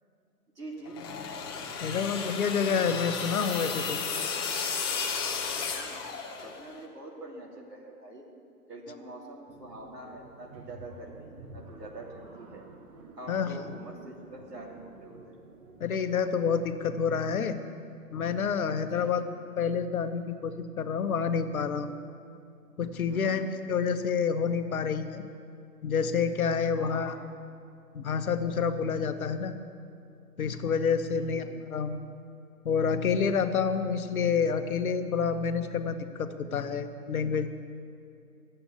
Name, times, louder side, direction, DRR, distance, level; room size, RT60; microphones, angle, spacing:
voice 1, 0.5-1.0 5.7-8.3 8.7-12.6 13.2-15.4 18.8-19.2 23.1-23.4 26.8-27.0 31.1-31.5, right 2 dB, 90° right, -2 dB, 2.9 m, -45 dB
sound 1, 0.9-6.7, left 5 dB, 15° left, 0.7 m, -33 dB
voice 2, 1.8-4.0 13.3-13.6 15.8-17.6 18.1-19.2 19.6-22.0 22.8-25.2 25.8-27.1 27.9-29.5 30.4-31.4 31.7-32.0 32.6-37.5, left 6 dB, 65° left, 9 dB, 1.1 m, -28 dB
sound 2, 9.5-17.0, right 3 dB, 25° right, 0.9 m, -51 dB
11.0 x 7.8 x 8.5 m, 2.5 s
figure-of-eight pair, 135°, 47 cm